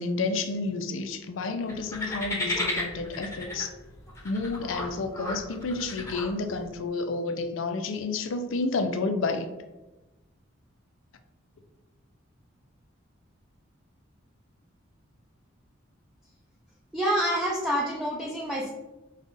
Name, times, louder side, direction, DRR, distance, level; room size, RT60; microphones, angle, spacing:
voice 1, 0.0-3.7 4.2-9.5, left 3 dB, 70° left, 7 dB, 0.5 m, -30 dB
sound 1, 1.7-6.7, left 1 dB, 15° left, 0.9 m, -34 dB
voice 2, 16.9-18.7, equal, ahead, -4 dB, 0.5 m, -27 dB
5.3 x 2.4 x 3.9 m, 1.0 s
head